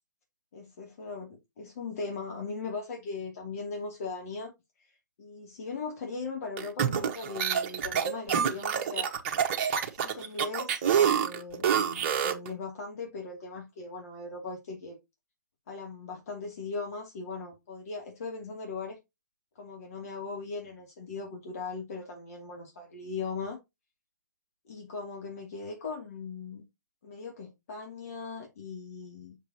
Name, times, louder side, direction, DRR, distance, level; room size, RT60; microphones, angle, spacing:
voice 1, 0.5-4.5 4.8-4.9 5.2-9.1 9.9-15.0 15.7-19.0 19.6-23.6 24.6-26.6 27.0-29.4, left 4 dB, 50° left, 2.6 m, -39 dB
sound 1, 6.6-12.5, right 8 dB, 40° right, 1.3 m, -27 dB
7.2 x 6.6 x 2.9 m
figure-of-eight pair, 135°, 10 cm